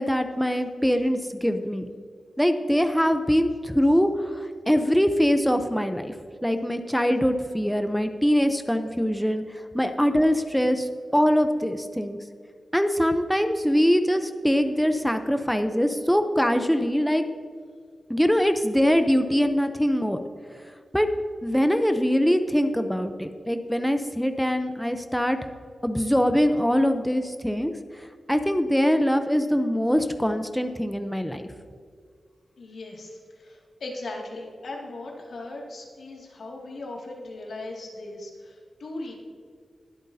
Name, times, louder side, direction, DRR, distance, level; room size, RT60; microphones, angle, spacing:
voice 1, 0.0-1.9 2.4-6.1 6.4-12.2 12.7-17.2 18.1-20.2 20.9-21.1 21.4-25.4 25.8-27.7 28.0-31.4, equal, ahead, 7 dB, 0.6 m, -23 dB
voice 2, 32.6-39.1, left 2 dB, 75° left, -1 dB, 2.2 m, -38 dB
21.0 x 8.2 x 2.7 m, 2.1 s
wide cardioid pair, 80°, 0 cm